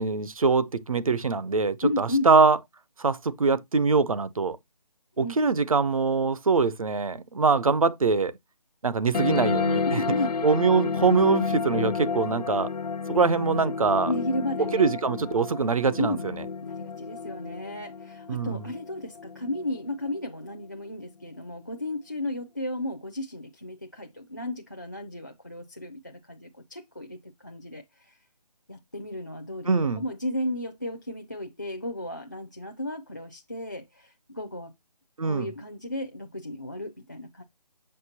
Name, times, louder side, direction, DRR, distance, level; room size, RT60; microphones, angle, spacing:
voice 1, 0.0-2.6 3.0-4.6 5.2-8.3 8.8-10.0 10.4-12.7 13.1-14.1 14.7-16.4 18.3-18.6 29.7-30.0 35.2-35.5, right 4 dB, 60° right, 0.6 m, -23 dB
voice 2, 1.8-2.3 5.2-5.4 9.9-10.4 14.1-14.9 16.0-16.3 16.6-28.2 28.7-34.7 35.2-37.4, left 1 dB, 30° left, 0.4 m, -34 dB
sound 1, 9.1-20.1, left 5 dB, 90° left, 0.5 m, -31 dB
6.5 x 5.6 x 2.7 m
hypercardioid pair, 180°, 20 cm